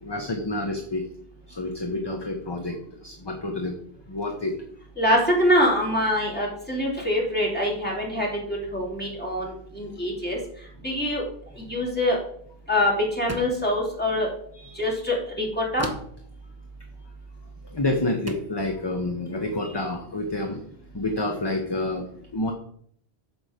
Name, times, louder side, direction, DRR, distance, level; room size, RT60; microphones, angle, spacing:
voice 1, 0.0-1.0 1.5-2.8 3.0-3.8 4.1-4.5 14.5-15.0 17.7-20.6 20.9-22.0 22.3-22.5, left 2 dB, 25° left, 3 dB, 0.9 m, -28 dB
voice 2, 5.0-10.4 10.8-11.2 11.7-12.2 12.7-14.3 14.8-15.9, left 1 dB, 10° left, -3 dB, 2.9 m, -24 dB
sound 1, 13.3-13.7 15.8-16.2 17.6-17.7 18.3-18.6, right 1 dB, 15° right, 0.7 m, -36 dB
9.5 x 6.3 x 5.1 m, 0.64 s
omnidirectional pair, 1.1 m